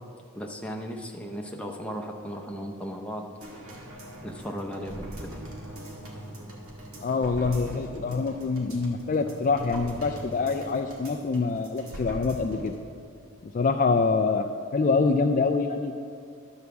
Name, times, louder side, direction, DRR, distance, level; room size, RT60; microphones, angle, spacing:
voice 1, 0.3-3.2 4.2-5.4, equal, 5° left, 1 dB, 0.7 m, -36 dB
sound 1, 3.4-12.8 13.2-13.3, right 1 dB, 70° right, 1.8 m, -41 dB
voice 2, 7.0-12.7 13.4-14.5 14.7-15.9, left 4 dB, 35° left, 5 dB, 0.3 m, -25 dB
11.0 x 4.8 x 6.9 m, 2.3 s
head